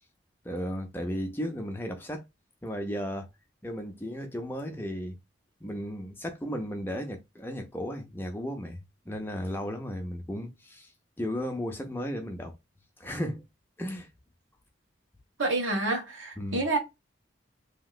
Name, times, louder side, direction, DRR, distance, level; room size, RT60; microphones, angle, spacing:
voice 1, 0.4-2.2 2.6-3.3 3.6-5.2 5.6-10.9 11.2-12.5 13.0-13.4 13.8-14.1 16.4-16.6, equal, 10° left, 0.5 m, -35 dB
voice 2, 15.4-16.8, right 2 dB, 85° right, 1.4 m, -28 dB
3.0 x 2.9 x 2.3 m
head